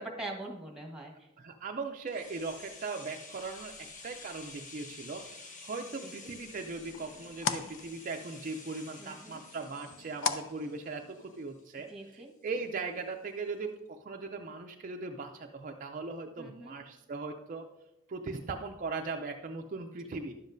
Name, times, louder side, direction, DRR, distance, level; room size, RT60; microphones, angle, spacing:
voice 1, 0.0-1.3 6.0-6.3 9.0-9.4 11.9-12.3 16.4-16.7, right 2 dB, 5° right, 1 dB, 1.3 m, -43 dB
voice 2, 1.4-17.6 18.1-20.3, right 3 dB, 40° right, 3 dB, 0.4 m, -39 dB
sound 1, 2.1-11.9 12.2-12.3, left 3 dB, 35° left, 0.9 m, -50 dB
sound 2, 6.0-11.4, left 6 dB, 65° left, 0.5 m, -40 dB
11.0 x 7.3 x 2.6 m, 0.99 s
head